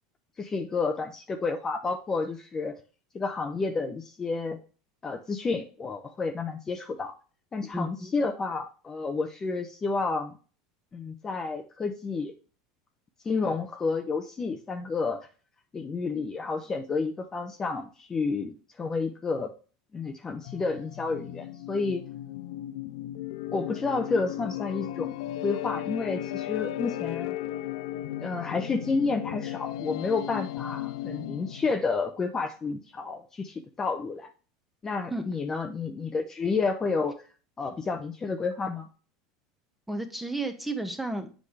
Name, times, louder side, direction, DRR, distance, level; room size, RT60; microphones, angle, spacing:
voice 1, 0.4-2.7 3.1-4.6 5.0-7.1 7.5-10.3 10.9-12.3 13.2-15.2 15.7-19.5 19.9-22.0 23.5-25.2 25.4-27.3 28.2-34.3 34.8-37.1 37.6-38.9, left 4 dB, 20° left, 5 dB, 0.8 m, -30 dB
voice 2, 7.7-8.1 35.1-35.3 39.9-41.3, right 2 dB, 5° right, 7 dB, 1.2 m, -32 dB
sound 1, 20.5-31.8, left 13 dB, 80° left, 0.4 m, -36 dB
7.7 x 5.1 x 3.2 m, 0.37 s
supercardioid pair, 115°, 2 cm